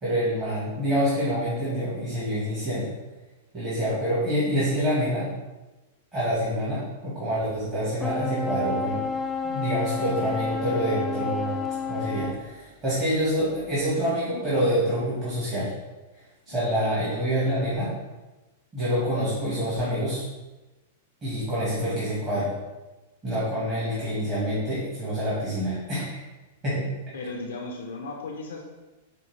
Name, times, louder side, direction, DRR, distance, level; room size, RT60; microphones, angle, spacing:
voice 1, 0.0-2.9 3.5-5.3 6.1-9.0 9.4-15.7 16.5-17.9 18.7-20.2 21.2-22.5 23.2-26.2 26.6-26.9, equal, 25° right, -10 dB, 1.4 m, -27 dB
sound 1, 8.0-12.4, left 4 dB, 10° left, 0.3 m, -30 dB
voice 2, 16.5-16.9 27.1-28.7, left 3 dB, 80° left, 0 dB, 0.5 m, -36 dB
5.0 x 2.2 x 3.2 m, 1.1 s
hypercardioid pair, 140°, 0 cm